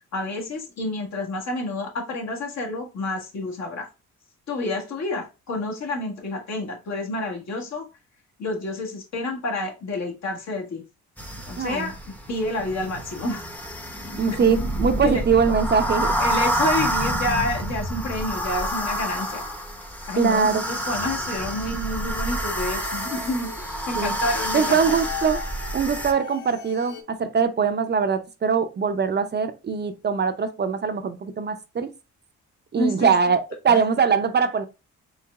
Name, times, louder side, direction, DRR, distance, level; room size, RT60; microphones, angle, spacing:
voice 1, 0.1-3.9 4.5-7.9 8.4-10.8 11.5-11.9 12.3-13.5 15.0-15.2 16.2-19.4 20.1-23.5 23.9-25.0 32.8-33.1 33.7-33.8, left 2 dB, 60° left, 1.5 m, -29 dB
sound 1, 11.2-26.1, right 1 dB, 5° left, 0.7 m, -28 dB
voice 2, 11.6-11.9 14.2-16.1 20.2-20.6 24.0-24.1 24.5-25.4 25.7-31.9 32.7-34.7, right 6 dB, 35° right, 0.6 m, -22 dB
sound 2, 20.2-27.0, left 5 dB, 85° left, 1.0 m, -40 dB
4.7 x 3.2 x 2.3 m
cardioid pair, 90°, 30 cm